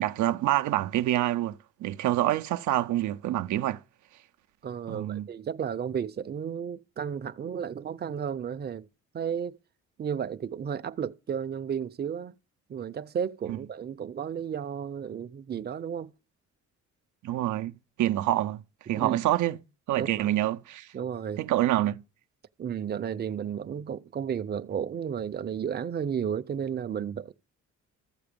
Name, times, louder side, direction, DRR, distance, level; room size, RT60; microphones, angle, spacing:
voice 1, 0.0-3.8 4.9-5.3 17.2-18.6 18.9-19.6 19.9-20.9 21.4-22.0, right 14 dB, 75° right, 0.6 m, -27 dB
voice 2, 4.6-8.9 9.1-9.6 10.0-12.3 12.7-16.1 19.0-19.2 20.0-20.3 20.9-21.4 22.6-27.3, right 8 dB, 35° right, 0.6 m, -33 dB
14.0 x 6.9 x 5.2 m
cardioid pair, 90°, 30 cm